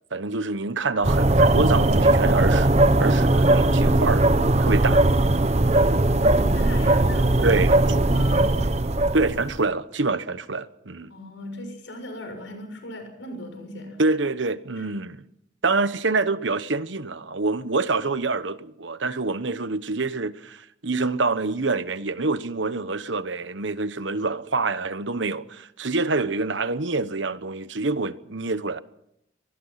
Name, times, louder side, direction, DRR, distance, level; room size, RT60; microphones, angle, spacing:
voice 1, 0.1-2.7 3.0-4.2 4.6-5.1 7.4-7.8 9.1-11.1 14.0-15.2 15.6-28.8, right 3 dB, 70° right, 1.1 m, -26 dB
sound 1, 1.0-9.6, right 2 dB, 35° right, 0.8 m, -19 dB
voice 2, 6.0-8.6 11.1-14.0 14.8-14.9, equal, 75° left, 6.9 m, -38 dB
24.0 x 20.0 x 5.8 m
head